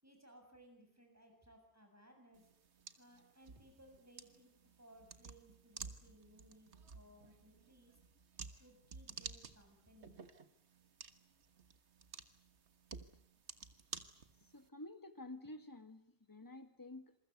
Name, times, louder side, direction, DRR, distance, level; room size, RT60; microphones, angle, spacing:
voice 1, 0.0-2.5 3.0-4.5 4.8-8.0 8.6-10.2, right 1 dB, 15° right, 3 dB, 7.4 m, -63 dB
sound 1, 2.3-14.7, right 5 dB, 90° right, 1.7 m, -53 dB
voice 2, 14.4-17.2, left 2 dB, 20° left, 8 dB, 1.9 m, -51 dB
27.5 x 22.5 x 8.1 m, 0.69 s
omnidirectional pair, 1.1 m